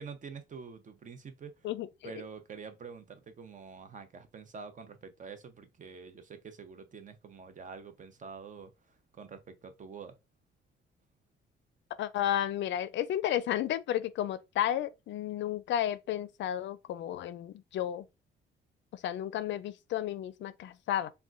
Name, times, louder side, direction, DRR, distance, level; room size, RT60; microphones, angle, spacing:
voice 1, 0.0-1.7 2.0-10.1, right 5 dB, 40° right, 0.7 m, -47 dB
voice 2, 1.6-2.2 12.0-18.1 18.9-21.1, left 11 dB, 70° left, 0.4 m, -32 dB
3.6 x 2.2 x 2.4 m
cardioid pair, 90°, 20 cm